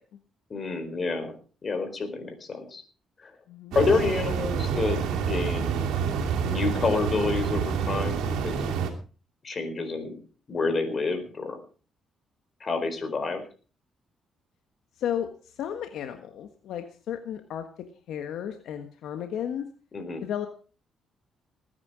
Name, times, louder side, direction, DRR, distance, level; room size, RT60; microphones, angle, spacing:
voice 1, 0.5-1.3 1.6-2.8 3.2-3.3 3.7-5.8 6.4-8.7 9.4-10.2 10.5-11.6 12.6-13.4 19.9-20.2, left 4 dB, 40° left, 8 dB, 4.4 m, -28 dB
sound 1, 3.7-8.9, right 6 dB, 90° right, 2.9 m, -28 dB
voice 2, 15.0-17.7 18.1-19.7 20.2-20.5, left 9 dB, 80° left, 7 dB, 1.4 m, -33 dB
19.5 x 9.7 x 4.9 m, 0.38 s
cardioid pair, 90°, 0 cm